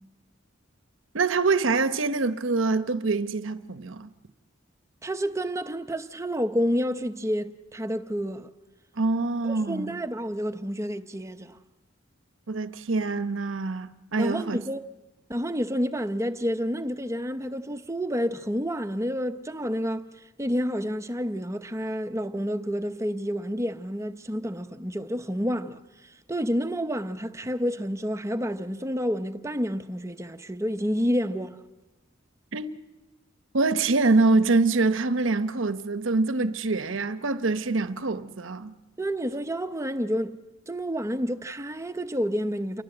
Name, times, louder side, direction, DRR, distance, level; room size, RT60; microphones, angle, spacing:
voice 1, 1.1-4.1 9.0-10.0 12.5-14.6 32.5-32.8 33.5-38.7, right 3 dB, 80° right, 0.9 m, -25 dB
voice 2, 5.0-8.5 9.5-11.6 14.2-14.8 15.3-31.6 39.0-40.4 40.7-42.8, equal, 15° right, 0.8 m, -29 dB
28.5 x 23.5 x 7.9 m
head